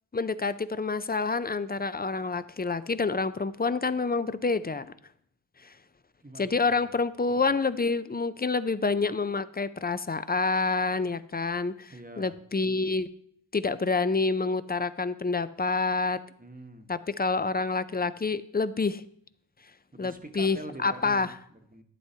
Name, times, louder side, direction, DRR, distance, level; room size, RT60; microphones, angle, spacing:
voice 1, 0.1-4.9 6.4-13.1 13.5-16.2 16.9-19.0 20.0-21.3, left 4 dB, 20° left, 14 dB, 0.4 m, -28 dB
voice 2, 6.2-6.7 7.3-7.5 11.9-12.4 16.4-16.9 19.9-21.8, right 2 dB, 15° right, 6 dB, 1.1 m, -45 dB
11.5 x 9.4 x 2.8 m, 0.66 s
wide cardioid pair, 50°, 48 cm